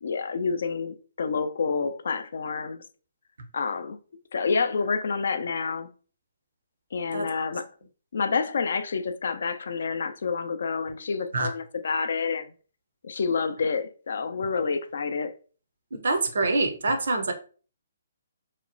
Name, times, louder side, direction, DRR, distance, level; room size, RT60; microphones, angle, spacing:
voice 1, 0.0-2.8 3.5-4.0 4.3-5.9 6.9-7.7 8.1-12.5 13.0-15.3, left 5 dB, 65° left, 0.3 m, -28 dB
voice 2, 7.1-7.5 11.3-11.5 15.9-17.3, right 3 dB, 70° right, 0.6 m, -26 dB
2.8 x 2.0 x 2.5 m
figure-of-eight pair, 135°, 0 cm